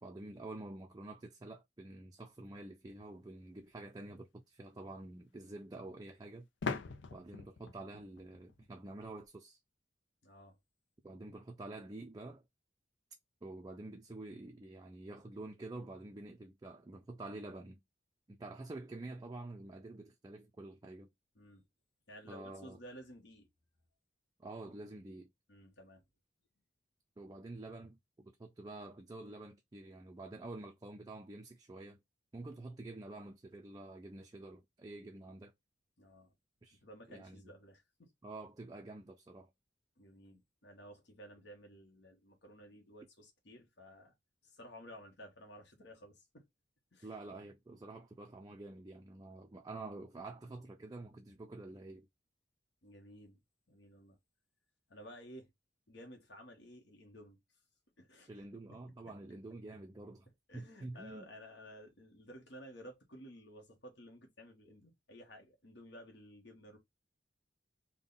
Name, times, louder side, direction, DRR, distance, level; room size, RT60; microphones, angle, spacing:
voice 1, 0.0-6.5 7.1-9.6 11.0-12.4 13.4-17.8 18.3-21.1 22.3-22.8 24.4-25.3 27.2-32.0 32.3-35.5 36.6-36.8 37.1-37.5 38.2-39.5 47.0-52.1 58.3-61.3, right 2 dB, 20° right, 0.4 m, -48 dB
sound 1, 3.6-3.7 6.6-9.3, left 4 dB, 85° left, 0.5 m, -42 dB
voice 2, 10.2-10.5 21.3-21.6 22.1-23.5 25.5-26.0 36.0-36.3 36.8-38.1 40.0-44.1 44.4-46.5 46.9-47.1 52.8-53.4 53.7-54.2 54.9-55.5 55.9-57.4 58.0-58.3 58.7-58.8 60.5-66.8, equal, 65° left, 1.2 m, -54 dB
3.6 x 2.2 x 3.8 m
head